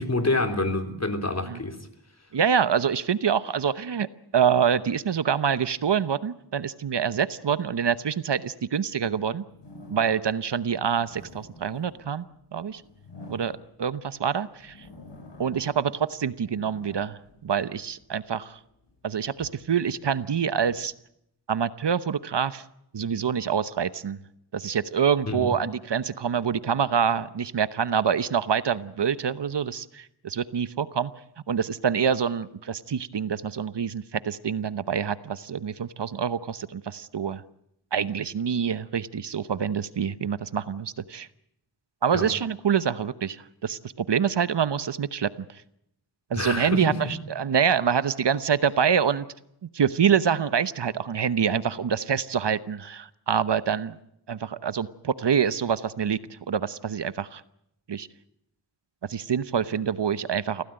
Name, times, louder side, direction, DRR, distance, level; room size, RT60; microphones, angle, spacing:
voice 1, 0.0-1.8 25.3-25.5 42.1-42.3 46.3-47.0, left 2 dB, 35° left, 6 dB, 3.6 m, -27 dB
voice 2, 2.3-9.4 9.9-12.3 12.5-12.8 13.3-14.9 15.4-18.6 19.0-20.9 21.5-22.6 22.9-24.2 24.5-31.1 31.5-37.4 37.9-41.3 42.0-45.6 46.3-49.3 49.7-54.0 54.3-57.4 57.9-58.1 59.1-60.6, right 7 dB, 70° right, 15 dB, 1.0 m, -26 dB
sound 1, 9.5-10.4 10.9-14.1 14.6-15.9 16.2-18.1 18.7-20.8, left 2 dB, 75° left, 7.6 m, -48 dB
25.0 x 16.5 x 9.0 m, 0.78 s
wide cardioid pair, 60°, 44 cm